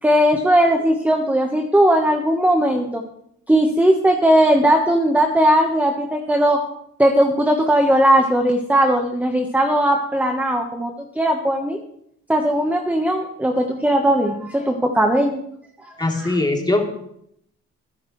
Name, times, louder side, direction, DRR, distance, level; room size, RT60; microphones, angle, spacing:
voice 1, 0.0-3.0 3.5-6.6 7.0-11.8 12.3-15.4 15.8-15.9 16.2-16.4, right 1 dB, 5° right, 3 dB, 1.4 m, -18 dB
voice 2, 16.0-17.1, left 2 dB, 15° left, 0 dB, 3.4 m, -21 dB
21.5 x 11.0 x 3.3 m, 0.73 s
cardioid pair, 90°, 30 cm